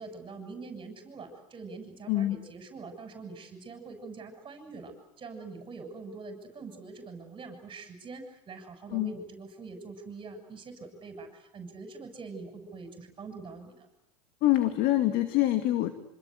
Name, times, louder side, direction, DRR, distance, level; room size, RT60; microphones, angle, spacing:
voice 1, 0.0-13.9, right 4 dB, 25° right, 6 dB, 7.3 m, -44 dB
voice 2, 14.4-15.9, left 14 dB, 50° left, 8 dB, 2.3 m, -25 dB
26.5 x 26.5 x 8.1 m, 0.80 s
hypercardioid pair, 110°, 20 cm